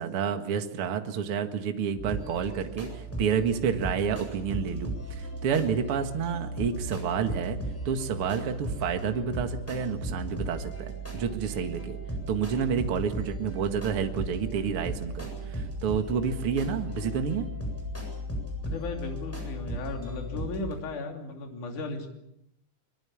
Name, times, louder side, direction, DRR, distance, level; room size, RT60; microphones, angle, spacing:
voice 1, 0.0-7.6 7.9-12.0 12.3-17.5, right 7 dB, 45° right, 6 dB, 2.3 m, -29 dB
sound 1, 2.0-20.7, right 1 dB, 5° left, 7.6 m, -36 dB
voice 2, 18.6-22.1, left 3 dB, 60° left, 3 dB, 4.3 m, -36 dB
24.5 x 23.0 x 7.2 m, 0.78 s
omnidirectional pair, 4.1 m